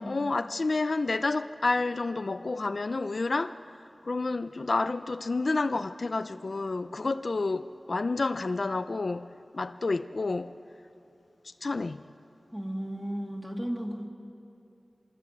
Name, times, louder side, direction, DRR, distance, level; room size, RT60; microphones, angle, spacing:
voice 1, 0.0-3.6 4.1-9.3 9.5-10.5 11.4-12.0, left 3 dB, 65° left, 0.5 m, -29 dB
voice 2, 12.5-14.1, equal, 15° right, 2.7 m, -34 dB
24.5 x 20.5 x 8.5 m
wide cardioid pair, 65°, 0 cm